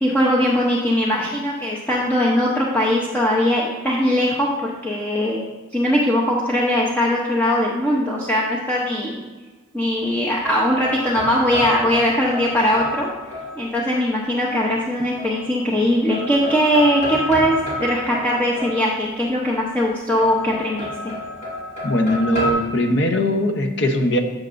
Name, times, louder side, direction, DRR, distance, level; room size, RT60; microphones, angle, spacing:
voice 1, 0.0-5.4 5.7-9.2 9.7-13.1 13.6-17.5 17.8-21.1, equal, 10° left, -5 dB, 0.8 m, -20 dB
sound 1, 10.0-14.0 15.2-15.8 16.1-19.3 20.2-22.5, left 1 dB, 35° left, 2.2 m, -30 dB
voice 2, 21.8-24.2, left 1 dB, 60° left, 5 dB, 0.9 m, -20 dB
11.0 x 7.4 x 2.6 m, 1.3 s
head